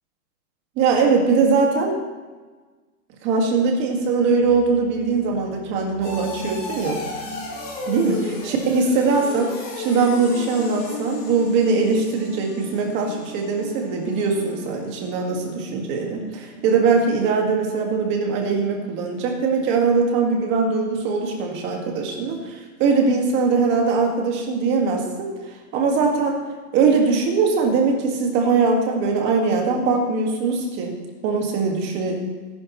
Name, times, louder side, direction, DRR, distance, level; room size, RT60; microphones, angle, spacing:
voice 1, 0.8-1.9 3.2-7.0 7.9-25.3 25.7-26.4 26.7-30.9 31.2-32.2, right 4 dB, 25° right, 1 dB, 1.9 m, -21 dB
sound 1, 4.4-17.1 17.4-17.8 18.2-18.3, left 2 dB, 20° left, 3.3 m, -36 dB
19.0 x 11.5 x 3.1 m, 1.3 s
hypercardioid pair, 160°, 46 cm